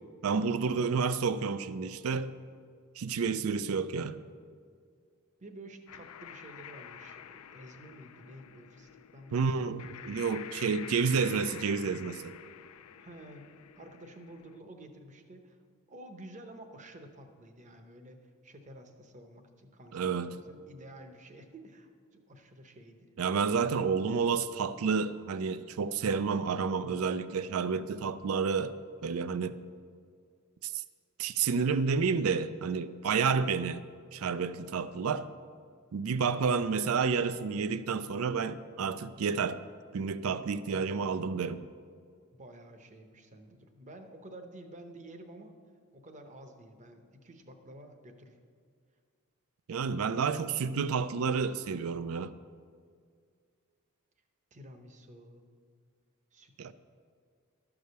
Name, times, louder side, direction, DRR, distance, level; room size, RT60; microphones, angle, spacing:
voice 1, 0.2-2.3 3.0-4.2 9.3-12.3 19.9-20.3 23.2-28.7 29.0-29.6 30.6-30.8 31.2-33.8 34.1-35.3 35.9-39.6 39.9-41.6 49.7-52.3 56.6-56.7, right 5 dB, 75° right, 0.4 m, -30 dB
voice 2, 0.8-1.1 5.4-10.1 10.7-11.4 13.0-13.5 13.8-15.6 15.9-23.1 42.3-45.5 45.9-48.4 54.5-55.5 56.3-56.7, right 1 dB, 35° right, 0.9 m, -51 dB
sound 1, 5.9-14.6, left 9 dB, 85° left, 0.4 m, -48 dB
12.5 x 4.9 x 6.7 m
head